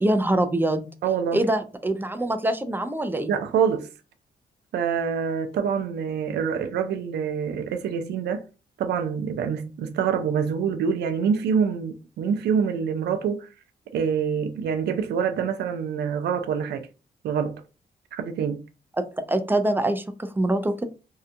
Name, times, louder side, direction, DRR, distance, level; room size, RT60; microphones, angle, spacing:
voice 1, 0.0-0.9 1.3-3.4 19.0-20.9, right 1 dB, 10° right, 0.3 m, -24 dB
voice 2, 1.0-1.4 3.3-3.9 4.7-8.4 8.8-13.5 13.9-16.8 17.2-17.6 18.1-18.6, right 7 dB, 85° right, 0.4 m, -26 dB
2.7 x 2.2 x 2.5 m
cardioid pair, 90°, 17 cm